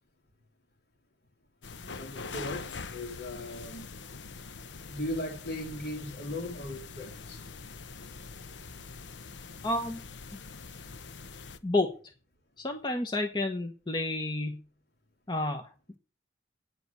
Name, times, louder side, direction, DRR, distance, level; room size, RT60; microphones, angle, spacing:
sound 1, 1.6-11.6, left 4 dB, 80° left, 0.9 m, -44 dB
voice 1, 2.0-3.9 4.8-7.5, left 1 dB, 60° left, 3.1 m, -38 dB
voice 2, 9.6-10.0 10.3-10.4 11.6-11.9 12.6-14.6 15.3-15.7, left 2 dB, 25° left, 1.1 m, -30 dB
9.4 x 7.7 x 8.2 m
head